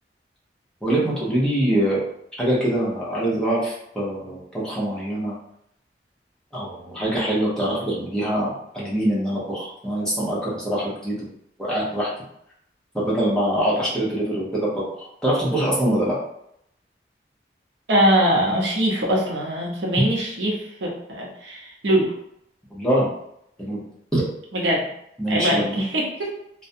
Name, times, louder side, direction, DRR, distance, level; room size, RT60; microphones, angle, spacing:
voice 1, 0.8-2.1 2.4-5.3 6.5-11.3 11.6-12.1 12.9-16.2 22.7-23.1 23.6-23.8 24.1-24.2 25.2-25.7, right 1 dB, 5° left, -8 dB, 0.7 m, -24 dB
voice 2, 17.9-22.1 24.5-24.9 25.3-26.3, equal, 85° right, -2 dB, 0.7 m, -22 dB
2.4 x 2.1 x 2.6 m, 0.74 s
head